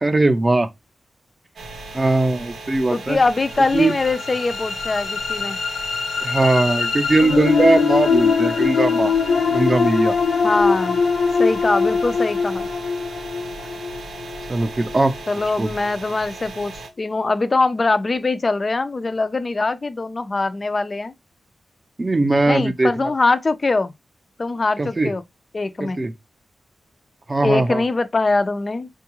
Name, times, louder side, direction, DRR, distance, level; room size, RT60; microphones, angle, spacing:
voice 1, 0.0-0.7 1.9-3.2 3.7-3.9 6.2-9.1 9.5-10.1 14.5-15.1 15.6-15.7 22.0-23.1 24.8-25.1 25.8-26.1 27.3-27.8, right 2 dB, 25° right, 0.5 m, -19 dB
sound 1, 1.6-16.9, right 3 dB, 85° right, 0.7 m, -37 dB
voice 2, 2.9-5.6 10.4-11.0 11.4-12.7 15.3-16.7 17.0-21.1 22.5-23.9 24.4-25.2 25.5-26.0 27.4-28.9, left 3 dB, 35° left, 0.4 m, -22 dB
sound 2, 3.4-15.4, left 5 dB, 90° left, 0.5 m, -22 dB
4.4 x 2.3 x 2.9 m
wide cardioid pair, 105°, 0 cm